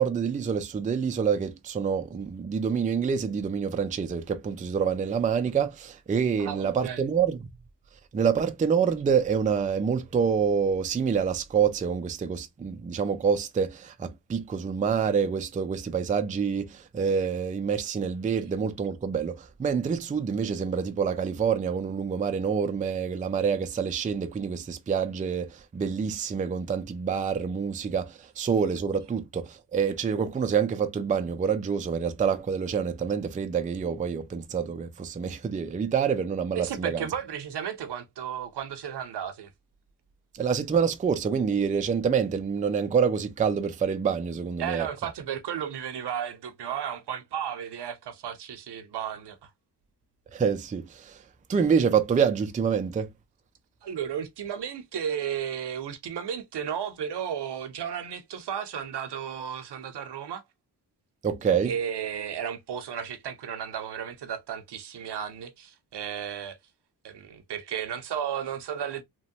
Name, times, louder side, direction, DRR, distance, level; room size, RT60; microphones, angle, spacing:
voice 1, 0.0-7.4 8.1-37.1 40.3-44.9 50.3-51.2 51.5-53.1 61.2-61.7, right 6 dB, 20° right, 0.3 m, -27 dB
voice 2, 6.4-7.1 36.5-39.5 44.6-49.5 53.8-60.4 61.6-66.6 67.0-69.0, right 8 dB, 80° right, 0.7 m, -34 dB
2.9 x 2.2 x 2.6 m
wide cardioid pair, 110°, 41 cm